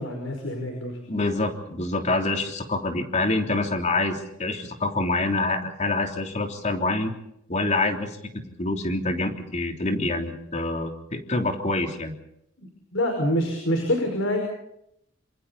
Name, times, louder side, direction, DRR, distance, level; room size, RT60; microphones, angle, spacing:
voice 1, 0.0-1.0 12.6-14.4, equal, 80° left, 3 dB, 5.4 m, -26 dB
voice 2, 1.1-7.1 7.5-12.1, left 2 dB, 35° left, 4 dB, 3.3 m, -26 dB
27.5 x 27.0 x 4.2 m, 0.77 s
head